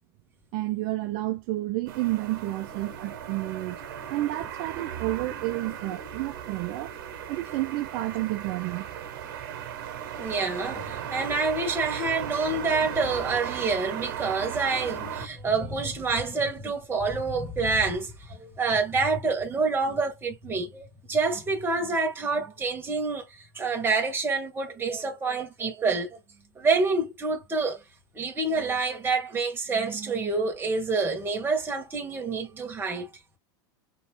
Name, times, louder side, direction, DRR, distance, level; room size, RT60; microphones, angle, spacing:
voice 1, 0.5-3.8 4.1-7.0 7.3-8.9, right 18 dB, 55° right, 0.5 m, -30 dB
sound 1, 1.9-15.3, right 9 dB, 70° right, 1.4 m, -36 dB
voice 2, 10.2-26.2 26.5-27.8 28.1-33.1, right 4 dB, 15° right, 1.7 m, -27 dB
4.1 x 3.0 x 3.6 m
supercardioid pair, 125°, 12 cm